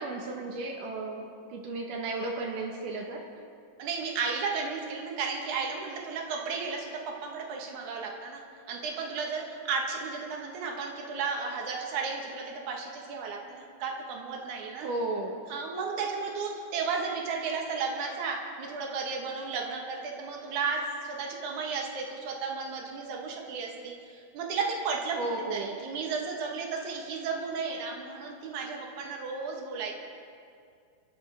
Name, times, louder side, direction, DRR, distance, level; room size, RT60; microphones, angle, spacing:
voice 1, 0.0-3.2 14.8-15.4 25.1-25.8, right 2 dB, 90° right, 1 dB, 3.0 m, -34 dB
voice 2, 3.8-8.4 8.7-14.9 15.5-25.2 25.5-29.9, right 5 dB, 70° right, 0 dB, 2.9 m, -34 dB
29.0 x 10.5 x 3.6 m, 2.3 s
omnidirectional pair, 3.6 m